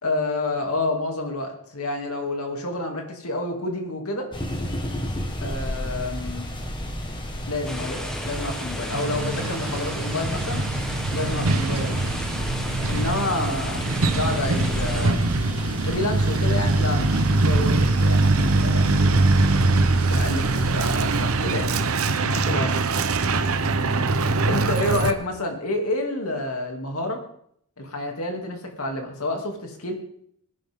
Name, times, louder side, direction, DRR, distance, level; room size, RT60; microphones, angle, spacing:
voice 1, 0.0-4.3 5.4-6.5 7.5-10.7 11.1-12.1 12.9-13.9 14.2-15.4 15.7-19.3 20.1-21.7 22.2-22.7 24.4-27.2 27.8-29.9, left 2 dB, 75° left, 3 dB, 2.8 m, -29 dB
sound 1, 4.3-20.7, left 1 dB, 20° left, 1.7 m, -33 dB
sound 2, 7.6-15.1, equal, 5° left, 1.3 m, -35 dB
Truck, 8.9-25.1, right 2 dB, 70° right, 0.9 m, -22 dB
20.5 x 11.0 x 3.8 m, 0.67 s
head